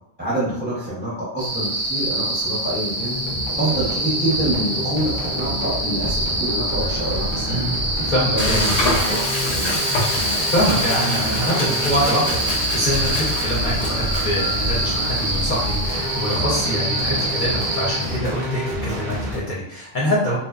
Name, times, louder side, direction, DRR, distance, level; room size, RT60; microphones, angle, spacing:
voice 1, 0.2-3.2 3.6-7.7 8.3-9.8, right 1 dB, 10° right, -8 dB, 0.5 m, -26 dB
sound 1, 1.4-18.2, right 1 dB, 80° right, 0.3 m, -26 dB
sound 2, 3.0-19.4, left 1 dB, 50° right, 0.7 m, -28 dB
voice 2, 8.0-8.8 10.5-20.4, equal, 50° left, -6 dB, 0.7 m, -24 dB
Frying (food), 8.4-16.4, left 2 dB, 90° left, 0.3 m, -28 dB
2.8 x 2.0 x 2.3 m, 0.80 s
omnidirectional pair, 1.3 m